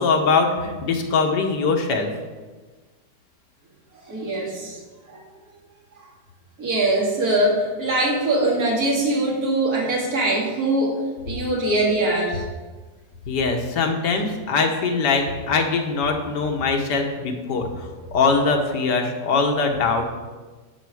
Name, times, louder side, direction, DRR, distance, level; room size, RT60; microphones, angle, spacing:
voice 1, 0.0-2.1 13.3-17.7 18.1-20.0, left 4 dB, 80° left, 3 dB, 1.6 m, -22 dB
voice 2, 4.1-4.8 5.1-5.2 6.0-6.1 6.6-11.0 11.3-12.4, right 1 dB, 60° right, -3 dB, 2.4 m, -22 dB
11.0 x 4.6 x 4.8 m, 1.3 s
omnidirectional pair, 1.8 m